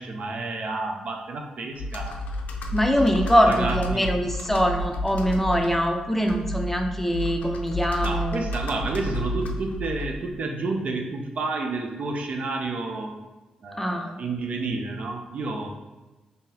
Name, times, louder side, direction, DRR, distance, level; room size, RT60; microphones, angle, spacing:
voice 1, 0.0-2.2 3.5-4.1 8.0-13.2 13.6-15.7, right 3 dB, 60° right, 3 dB, 0.5 m, -30 dB
Computer keyboard, 1.8-10.4, equal, 75° left, 0.4 m, -31 dB
voice 2, 2.7-8.4 13.8-14.1, equal, 10° left, 3 dB, 0.5 m, -23 dB
3.7 x 2.7 x 2.7 m, 1.2 s
supercardioid pair, 50°, 3 cm